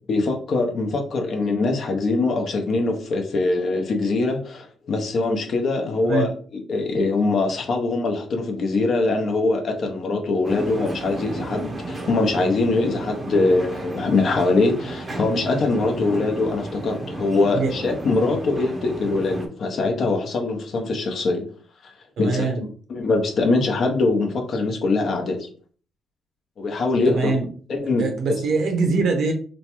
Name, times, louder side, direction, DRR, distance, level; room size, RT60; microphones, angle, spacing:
voice 1, 0.1-21.5 21.8-21.9 22.2-22.5 22.9-25.5 26.6-27.3 27.7-28.0 28.3-28.4, left 3 dB, 55° left, 3 dB, 0.7 m, -22 dB
sound 1, 10.4-19.5, right 2 dB, 35° right, 0.6 m, -33 dB
voice 2, 22.2-22.7 27.1-27.5 28.0-29.3, right 3 dB, 70° right, 4 dB, 0.8 m, -23 dB
3.0 x 2.2 x 2.9 m, 0.43 s
cardioid pair, 90°, 0 cm